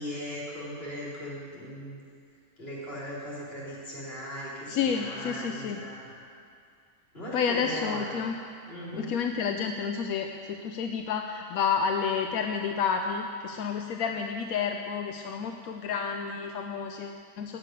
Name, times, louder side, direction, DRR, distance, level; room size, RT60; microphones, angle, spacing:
voice 1, 0.0-2.0 2.6-6.2 7.1-8.1 8.7-9.1, equal, 45° left, -7 dB, 4.0 m, -38 dB
voice 2, 4.7-5.8 7.3-8.4 8.9-17.6, left 6 dB, 85° left, 4 dB, 1.1 m, -30 dB
16.0 x 6.6 x 9.1 m, 2.3 s
omnidirectional pair, 1.5 m